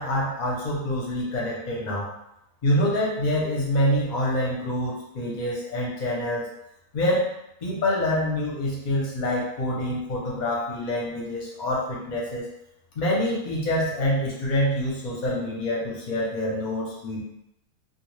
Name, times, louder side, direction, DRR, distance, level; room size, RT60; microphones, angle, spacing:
voice 1, 0.0-2.1 2.6-6.4 6.9-7.2 7.6-12.4 12.9-17.2, left 1 dB, 40° left, -4 dB, 0.7 m, -26 dB
2.4 x 2.3 x 3.1 m, 0.85 s
omnidirectional pair, 1.5 m